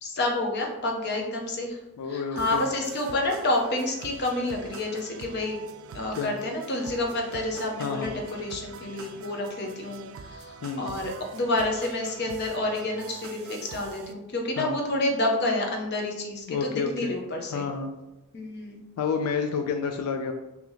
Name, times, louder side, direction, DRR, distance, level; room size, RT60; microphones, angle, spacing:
voice 1, 0.0-1.8 2.1-5.6 5.9-17.7 18.3-18.8, left 2 dB, 50° left, 1 dB, 0.7 m, -29 dB
voice 2, 2.0-2.7 6.1-6.3 7.8-8.1 10.6-10.9 14.6-14.8 16.5-17.1 17.5-17.9 19.0-20.3, left 5 dB, 85° left, 6 dB, 0.3 m, -29 dB
sound 1, 2.4-14.1, right 5 dB, 65° right, 0.3 m, -44 dB
2.8 x 2.8 x 3.8 m, 1.0 s
head